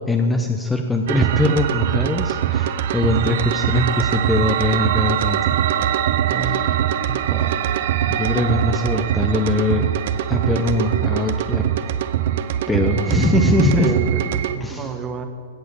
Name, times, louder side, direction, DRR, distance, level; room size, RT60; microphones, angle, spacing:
voice 1, 0.1-5.4 6.4-6.7 8.1-9.9 10.3-11.7 12.7-13.9 14.6-14.9, left 2 dB, 5° left, 4 dB, 0.7 m, -21 dB
sound 1, 1.1-14.6, right 10 dB, 60° right, 0.7 m, -22 dB
voice 2, 6.3-6.6 7.1-7.6 13.8-15.3, right 5 dB, 20° right, 7 dB, 1.1 m, -29 dB
16.5 x 6.5 x 7.0 m, 2.1 s
hypercardioid pair, 150°, 0 cm